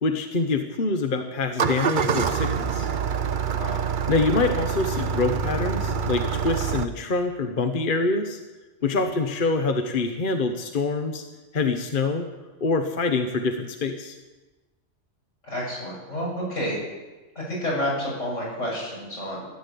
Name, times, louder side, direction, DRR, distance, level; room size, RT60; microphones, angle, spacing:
voice 1, 0.0-2.9 4.1-8.4 8.8-11.2 11.5-12.2 12.6-14.2, left 3 dB, 45° left, 6 dB, 1.2 m, -25 dB
Engine starting, 1.4-6.9, right 6 dB, 50° right, 0.8 m, -26 dB
voice 2, 3.5-3.9 9.0-9.1 15.4-16.8 17.4-19.5, equal, 80° left, -4 dB, 7.3 m, -30 dB
14.5 x 11.5 x 8.4 m, 1.2 s
omnidirectional pair, 1.3 m